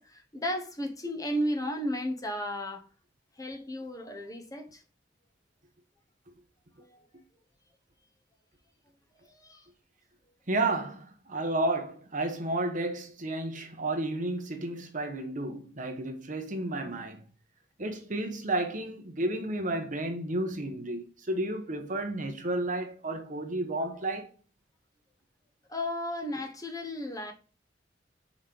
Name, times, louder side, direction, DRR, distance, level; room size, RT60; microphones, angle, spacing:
voice 1, 0.0-2.9 3.4-4.8 6.8-7.0 9.4-9.7 25.7-27.3, equal, 20° left, 1.1 m, -34 dB
voice 2, 10.5-17.2 17.8-24.3, right 2 dB, 45° right, 1.2 m, -32 dB
5.8 x 4.4 x 5.3 m
head